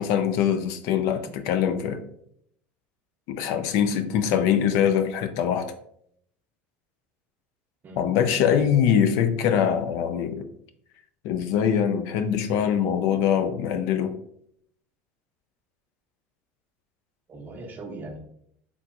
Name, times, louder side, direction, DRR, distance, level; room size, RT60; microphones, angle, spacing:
voice 1, 0.0-2.0 3.3-5.7 8.0-10.4 11.2-14.2, left 8 dB, 65° left, 9 dB, 0.4 m, -23 dB
voice 2, 17.3-18.2, right 2 dB, 30° right, 3 dB, 0.7 m, -39 dB
3.5 x 2.8 x 2.5 m, 0.69 s
supercardioid pair, 120°, 6 cm